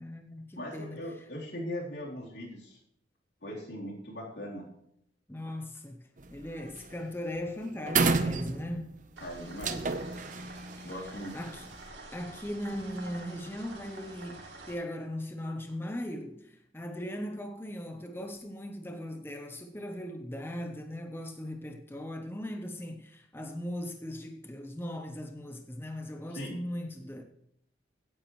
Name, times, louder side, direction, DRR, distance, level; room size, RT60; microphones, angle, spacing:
voice 1, 0.0-1.1 5.3-8.9 10.8-10.9 11.3-11.7 12.1-27.2, left 1 dB, 15° left, 0.8 m, -39 dB
voice 2, 0.6-2.8 3.4-4.7 9.2-9.9 10.8-11.4 26.3-26.6, left 1 dB, 80° left, 3.7 m, -39 dB
sound 1, 6.2-6.5 6.8-7.1 7.3-7.4 7.9-9.0 9.6-11.7, right 4 dB, 45° right, 0.9 m, -30 dB
sound 2, 9.2-14.7, right 3 dB, 90° right, 3.0 m, -48 dB
16.5 x 9.2 x 3.2 m
head